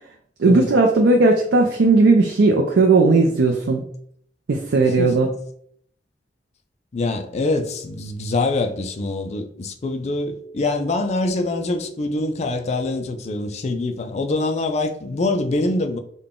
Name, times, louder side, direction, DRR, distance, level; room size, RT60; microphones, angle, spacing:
voice 1, 0.4-3.9 4.5-5.3, right 3 dB, 90° right, 0.5 m, -16 dB
voice 2, 4.8-5.1 6.9-16.0, left 2 dB, 40° left, 0.4 m, -24 dB
3.8 x 2.2 x 3.6 m
head